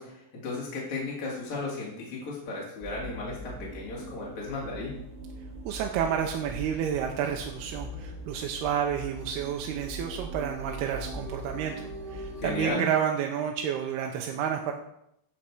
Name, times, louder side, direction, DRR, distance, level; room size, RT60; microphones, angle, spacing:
voice 1, 0.0-5.0 12.4-12.8, left 3 dB, 40° left, -5 dB, 2.8 m, -35 dB
sound 1, 2.8-12.7, right 2 dB, 20° right, 1.5 m, -41 dB
voice 2, 5.6-14.7, right 8 dB, 90° right, 2 dB, 2.8 m, -30 dB
15.5 x 5.7 x 4.7 m, 0.78 s
omnidirectional pair, 4.6 m